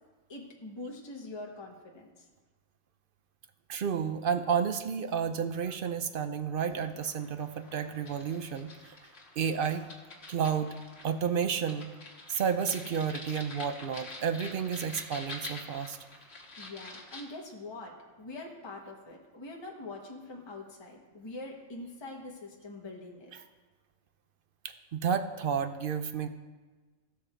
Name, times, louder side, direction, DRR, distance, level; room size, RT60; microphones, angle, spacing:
voice 1, 0.3-2.3 16.6-23.3, left 2 dB, 20° left, -1 dB, 1.2 m, -44 dB
voice 2, 3.7-9.0 9.4-9.9 10.3-10.7 11.0-11.9 12.3-16.0 24.9-26.3, right 7 dB, 55° right, 9 dB, 0.6 m, -31 dB
sound 1, 6.6-17.2, left 2 dB, 50° left, 1.7 m, -47 dB
15.5 x 6.4 x 4.4 m, 1.3 s
omnidirectional pair, 1.3 m